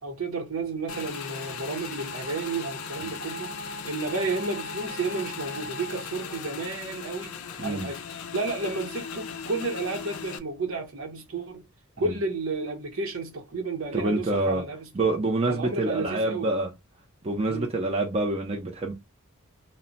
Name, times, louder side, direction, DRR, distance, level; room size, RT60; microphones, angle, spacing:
voice 1, 0.0-11.7 12.0-15.1 15.5-16.5 17.5-17.7, right 3 dB, 70° right, 0.8 m, -32 dB
Motorcycle / Engine, 0.9-10.4, left 5 dB, 70° left, 0.4 m, -37 dB
voice 2, 13.9-14.6 14.9-16.7 17.2-18.9, right 2 dB, 30° right, 0.5 m, -26 dB
2.1 x 2.1 x 3.8 m
head